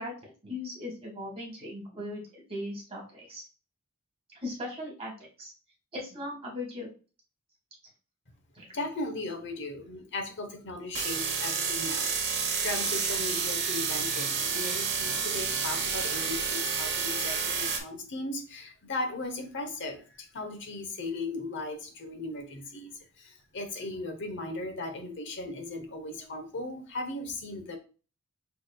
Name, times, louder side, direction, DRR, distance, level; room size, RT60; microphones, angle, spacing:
voice 1, 0.0-3.4 4.4-5.1 5.4-5.5 5.9-6.9 8.5-8.6, left 1 dB, 25° right, -2 dB, 1.8 m, -38 dB
voice 2, 8.7-22.9 23.2-27.8, left 2 dB, 55° left, 5 dB, 1.0 m, -37 dB
sound 1, 10.9-17.8, right 6 dB, 55° right, 1.1 m, -30 dB
6.2 x 3.6 x 2.3 m, 0.35 s
head